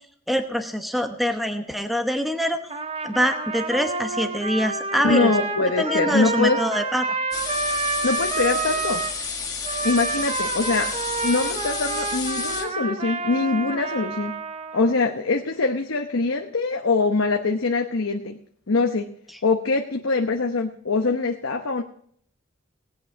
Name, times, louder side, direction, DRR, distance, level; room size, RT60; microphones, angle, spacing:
voice 1, 0.3-2.6 3.0-5.3 5.8-7.2, equal, ahead, 6 dB, 0.9 m, -24 dB
Trumpet, 2.7-9.2 9.6-15.0, right 3 dB, 30° right, 0.8 m, -29 dB
voice 2, 5.0-6.6 8.0-9.0 9.8-10.9 11.2-14.4 14.7-18.4 18.7-19.1 19.4-21.8, left 3 dB, 75° left, 3 dB, 0.9 m, -23 dB
sound 1, 7.3-12.6, left 5 dB, 20° left, 1.8 m, -31 dB
18.0 x 8.6 x 4.6 m, 0.64 s
head